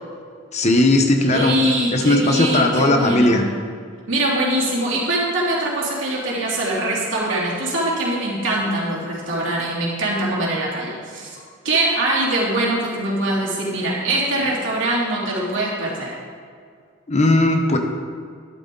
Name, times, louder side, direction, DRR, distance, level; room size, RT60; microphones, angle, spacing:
voice 1, 0.5-1.5 1.9-3.4 17.1-17.8, left 2 dB, 35° left, 4 dB, 0.9 m, -17 dB
voice 2, 1.3-3.4 4.1-11.4 11.6-16.1, right 1 dB, 65° right, -5 dB, 3.2 m, -22 dB
12.0 x 11.5 x 3.9 m, 2.1 s
head